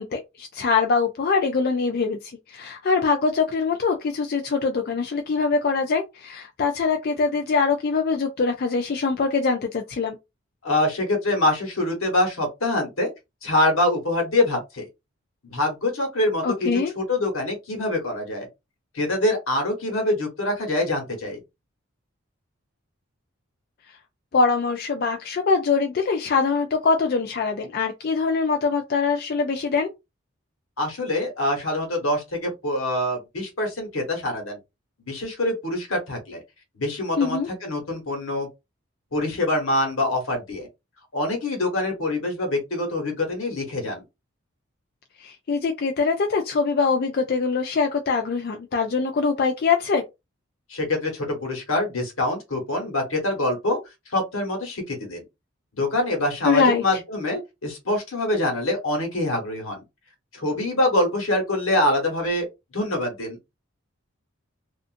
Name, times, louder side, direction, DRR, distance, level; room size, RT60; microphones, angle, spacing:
voice 1, 0.0-10.2 16.4-16.9 24.3-29.9 37.2-37.5 45.2-50.0 56.4-56.8, left 4 dB, 45° left, 0.3 m, -23 dB
voice 2, 10.6-13.1 13.4-14.9 15.4-18.5 18.9-21.4 30.8-34.6 35.1-36.4 36.8-38.5 39.1-40.7 41.1-44.0 50.7-53.8 54.1-55.2 55.8-59.8 60.3-62.5 62.7-63.4, left 1 dB, 80° left, 1.2 m, -25 dB
2.5 x 2.4 x 2.5 m
head